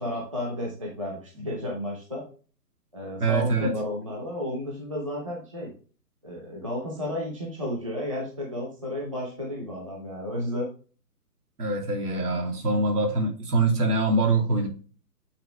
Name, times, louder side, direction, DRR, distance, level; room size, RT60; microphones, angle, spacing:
voice 1, 0.0-2.2 2.9-5.7 6.2-10.7, left 1 dB, 20° right, -3 dB, 0.9 m, -32 dB
voice 2, 3.2-3.7 11.6-14.7, right 2 dB, 65° right, 1 dB, 2.7 m, -24 dB
8.7 x 3.6 x 3.3 m, 0.38 s
hypercardioid pair, 180°, 49 cm